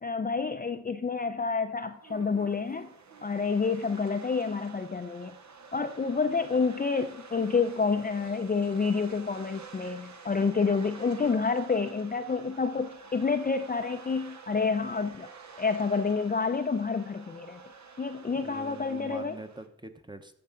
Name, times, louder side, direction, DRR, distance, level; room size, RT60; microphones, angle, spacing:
voice 1, 0.0-2.9 3.2-5.3 5.7-15.3 15.6-17.6 18.0-19.4, left 4 dB, 30° left, 7 dB, 0.5 m, -28 dB
sound 1, 1.8-19.7, right 5 dB, 65° right, 1.0 m, -49 dB
voice 2, 18.4-20.4, right 2 dB, 15° right, 7 dB, 0.9 m, -44 dB
13.5 x 5.4 x 3.8 m, 0.72 s
cardioid pair, 55°, 31 cm